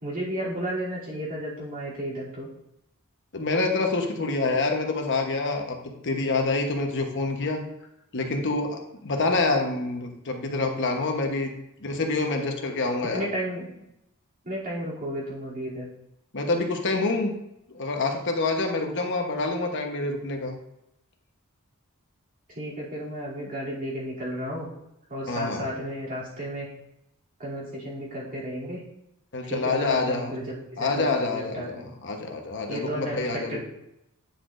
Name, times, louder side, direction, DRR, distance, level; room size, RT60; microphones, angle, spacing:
voice 1, 0.0-2.5 13.1-13.7 14.4-15.9 22.5-24.7 25.1-26.7 27.4-28.8 29.4-31.9 32.7-33.6, equal, 40° right, -7 dB, 2.9 m, -33 dB
voice 2, 3.3-7.6 8.1-11.5 11.8-13.2 16.3-17.3 17.7-20.6 25.3-25.7 29.3-30.4 30.8-31.7 32.0-33.6, left 3 dB, 55° left, 3 dB, 1.1 m, -27 dB
9.8 x 6.1 x 2.6 m, 0.85 s
head